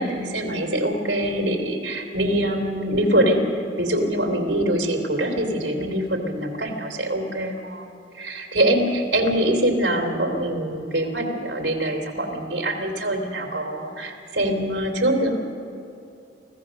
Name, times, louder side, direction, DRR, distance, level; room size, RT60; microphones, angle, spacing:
voice 1, 0.0-3.4 3.8-7.9 8.1-15.4, right 1 dB, 70° right, 2 dB, 3.2 m, -24 dB
25.0 x 16.0 x 6.5 m, 2.7 s
head